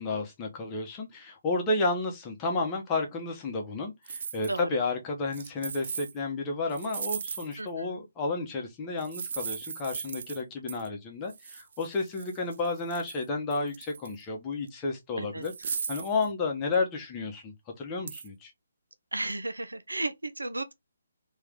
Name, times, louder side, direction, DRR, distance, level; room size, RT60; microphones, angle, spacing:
voice 1, 0.0-18.5, left 3 dB, 20° left, 1.2 m, -32 dB
sound 1, 4.1-4.6 5.3-6.1 6.7-7.7 9.0-10.4 10.7-10.9 11.3-13.2 13.5-14.2 14.7-14.8 15.4-16.3 18.1-18.3, right 6 dB, 55° right, 0.3 m, -38 dB
voice 2, 7.6-8.0 15.2-15.4 19.1-20.7, right 2 dB, 85° right, 0.7 m, -34 dB
3.2 x 3.2 x 3.7 m
figure-of-eight pair, 145°, 0 cm